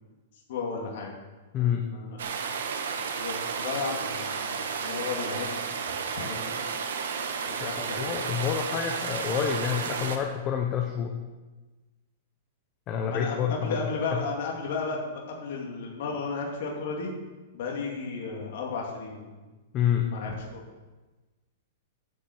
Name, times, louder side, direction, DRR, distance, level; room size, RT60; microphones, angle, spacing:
voice 1, 0.5-1.1 1.6-2.3 2.7-5.5 6.2-6.5 7.4-8.0 13.1-17.1 17.5-19.4 20.1-20.6, left 4 dB, 60° left, -1 dB, 2.5 m, -34 dB
voice 2, 1.5-1.9 8.0-11.1 12.9-13.8 19.7-20.1, left 8 dB, 25° left, 3 dB, 0.9 m, -28 dB
sound 1, 2.2-10.2, right 6 dB, 90° right, 1.3 m, -32 dB
9.9 x 7.3 x 6.5 m, 1.2 s
supercardioid pair, 160°, 0 cm